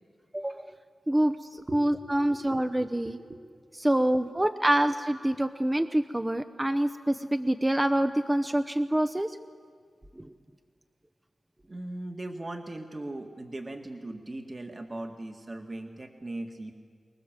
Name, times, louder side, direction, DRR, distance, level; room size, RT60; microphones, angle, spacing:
voice 1, 0.3-0.7 1.1-3.2 3.8-9.4 10.2-10.3, right 1 dB, 15° right, 9 dB, 0.9 m, -26 dB
voice 2, 1.7-3.5 3.9-4.7 11.7-16.7, right 1 dB, 35° right, 3 dB, 1.9 m, -40 dB
25.0 x 20.5 x 7.5 m, 2.1 s
cardioid pair, 50°, 0 cm